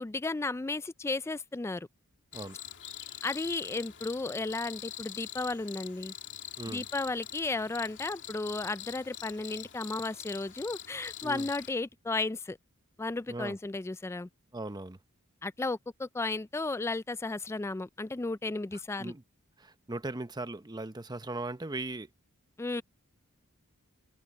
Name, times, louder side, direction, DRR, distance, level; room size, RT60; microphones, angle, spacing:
voice 1, 0.0-1.9 3.2-6.1 6.7-12.6 13.0-14.3 15.4-19.1 22.6-22.8, left 3 dB, 10° left, 0.3 m, -34 dB
Cricket, 2.3-11.7, left 10 dB, 55° left, 3.0 m, -44 dB
voice 2, 6.6-6.9 11.2-11.5 13.3-13.6 14.5-15.0 18.7-19.2 19.6-22.1, right 2 dB, 20° right, 0.8 m, -38 dB
head